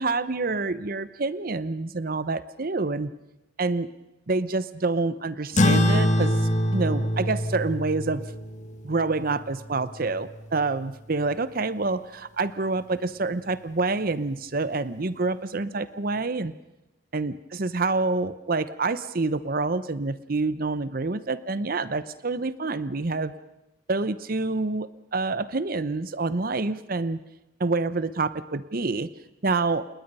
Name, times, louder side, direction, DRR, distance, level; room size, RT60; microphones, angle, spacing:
voice 1, 0.0-3.1 3.6-3.9 4.3-6.4 6.7-8.2 8.8-16.5 17.1-23.3 23.9-27.2 27.6-29.1 29.4-29.9, right 3 dB, 55° right, 14 dB, 0.9 m, -27 dB
sound 1, 5.6-10.4, left 1 dB, 40° left, 1.8 m, -25 dB
29.5 x 19.5 x 5.5 m, 0.96 s
head